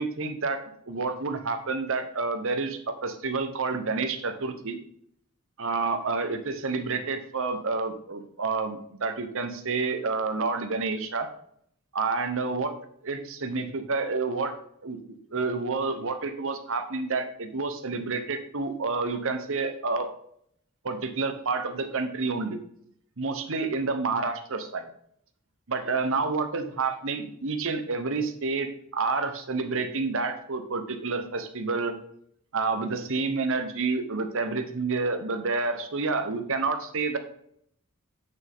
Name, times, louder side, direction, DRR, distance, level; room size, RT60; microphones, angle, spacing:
voice 1, 0.0-4.8 5.6-11.3 11.9-12.8 13.0-14.5 14.8-15.0 15.3-20.1 20.8-22.6 23.2-24.9 25.7-31.9 32.5-37.2, right 4 dB, 60° right, 8 dB, 1.1 m, -29 dB
8.8 x 6.6 x 3.7 m, 0.69 s
head